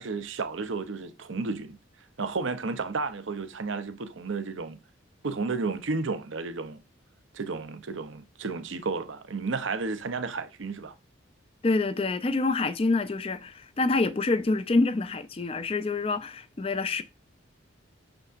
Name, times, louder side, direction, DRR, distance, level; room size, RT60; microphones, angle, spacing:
voice 1, 0.0-1.8 2.2-4.8 5.2-6.8 7.3-10.9, right 4 dB, 70° right, 0.7 m, -32 dB
voice 2, 11.6-17.0, left 3 dB, 30° left, 0.4 m, -26 dB
6.7 x 5.9 x 2.5 m
head